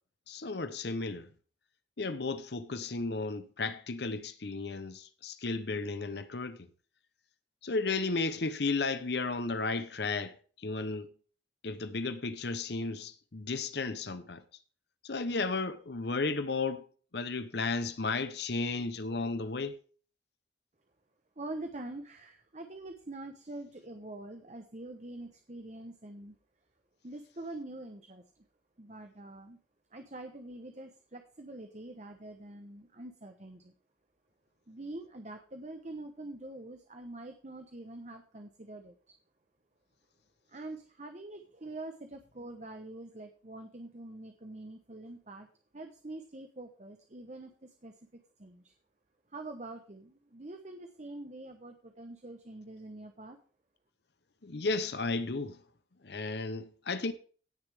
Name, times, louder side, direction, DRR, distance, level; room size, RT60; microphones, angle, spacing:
voice 1, 0.3-1.3 2.0-6.7 7.6-11.1 11.6-14.4 15.0-16.9 17.1-19.8 54.4-55.6 56.0-57.1, left 3 dB, 60° left, 0.8 m, -34 dB
voice 2, 21.4-26.4 27.0-28.3 28.8-29.6 29.9-33.7 34.7-39.1 40.5-48.7 49.3-53.4, right 2 dB, 40° right, 1.0 m, -45 dB
17.0 x 6.6 x 3.5 m
head